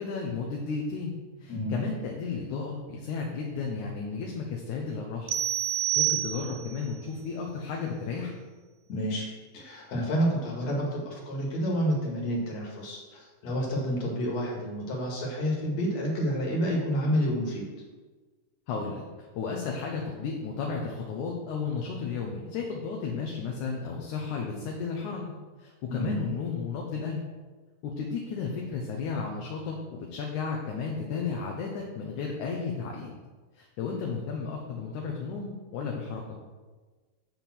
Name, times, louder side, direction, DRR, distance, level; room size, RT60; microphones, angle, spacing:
voice 1, 0.0-5.3 5.7-8.3 18.7-19.0 19.4-25.3 25.6-27.2 27.8-33.1 33.5-36.4, left 5 dB, 70° left, 0 dB, 2.3 m, -33 dB
sound 1, 5.3-6.8, right 13 dB, 90° right, 1.5 m, -28 dB
voice 2, 8.9-9.3 9.5-17.7 25.9-26.2, equal, 55° left, -2 dB, 3.0 m, -29 dB
10.5 x 3.7 x 7.5 m, 1.3 s
omnidirectional pair, 3.8 m